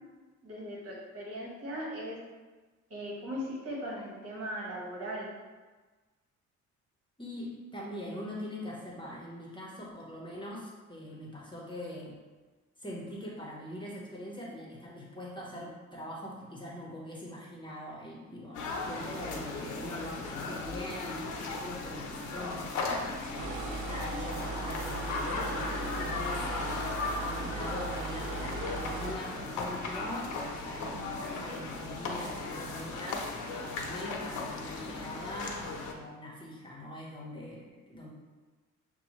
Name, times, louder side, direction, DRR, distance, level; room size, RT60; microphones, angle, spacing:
voice 1, 0.4-2.2 2.9-5.3, equal, 55° right, -4 dB, 1.5 m, -38 dB
voice 2, 7.2-12.1 12.8-23.2 23.8-26.9 27.2-33.3 33.6-38.1, left 1 dB, 15° left, -4 dB, 1.0 m, -42 dB
sound 1, 18.5-35.9, left 3 dB, 75° left, 0.7 m, -37 dB
sound 2, 23.4-29.2, right 3 dB, 85° right, 0.5 m, -38 dB
6.7 x 2.3 x 3.1 m, 1.3 s
cardioid pair, 90°, 30 cm